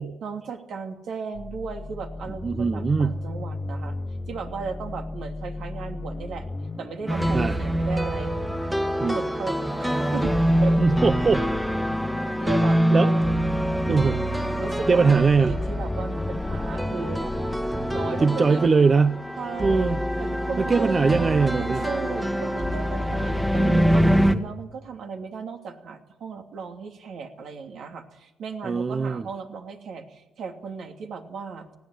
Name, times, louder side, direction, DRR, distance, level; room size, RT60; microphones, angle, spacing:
voice 1, 0.2-4.0 4.3-6.5 6.8-8.3 8.7-8.8 9.1-11.2 12.4-13.4 14.6-17.3 17.9-18.6 19.4-21.3 21.6-31.7, right 5 dB, 70° right, 3 dB, 2.8 m, -36 dB
sound 1, 1.3-18.2, left 2 dB, 20° left, 0.9 m, -36 dB
voice 2, 2.4-3.2 7.3-7.5 9.0-9.2 10.8-11.4 12.9-13.1 13.9-14.2 14.9-15.6 18.2-19.2 19.6-20.0 20.6-21.9 28.6-29.2, right 4 dB, 35° right, 12 dB, 0.7 m, -21 dB
sound 2, 7.1-24.4, equal, 5° right, 1.6 m, -25 dB
19.5 x 15.5 x 9.3 m, 0.94 s
cardioid pair, 90°, 0 cm